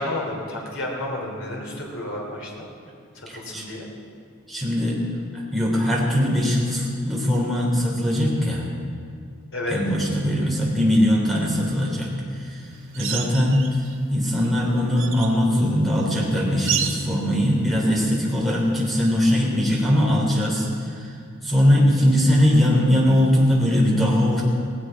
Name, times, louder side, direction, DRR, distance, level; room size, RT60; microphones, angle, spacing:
voice 1, 0.0-2.7 3.1-3.9 9.5-9.8, left 1 dB, 65° left, -2 dB, 3.1 m, -31 dB
voice 2, 3.3-3.6 4.5-5.0 5.3-8.7 9.7-12.7 12.9-13.8 14.1-21.1 21.4-24.4, equal, ahead, -4 dB, 3.4 m, -21 dB
sound 1, 12.9-14.0 14.4-15.4 16.7-17.2 19.4-19.5, right 9 dB, 60° right, 1.4 m, -30 dB
18.0 x 16.5 x 4.7 m, 2.2 s
head